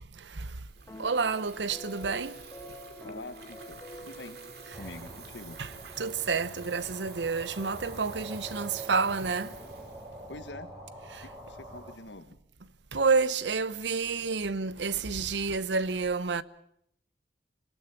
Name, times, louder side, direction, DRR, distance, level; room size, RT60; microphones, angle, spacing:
Water tap faucet / Fill (with liquid), 0.6-10.9, right 5 dB, 60° right, 2.7 m, -50 dB
sound 1, 0.9-5.3, equal, 15° left, 4.1 m, -47 dB
voice 1, 1.0-2.3 5.6-5.7 6.0-9.5 12.9-16.4, right 4 dB, 80° right, 0.8 m, -29 dB
voice 2, 3.0-4.4 4.8-5.6 10.3-10.7 11.2-12.3, left 2 dB, 90° left, 1.5 m, -45 dB
sound 2, 4.7-12.0, right 1 dB, 15° right, 3.4 m, -45 dB
25.5 x 18.0 x 7.1 m
head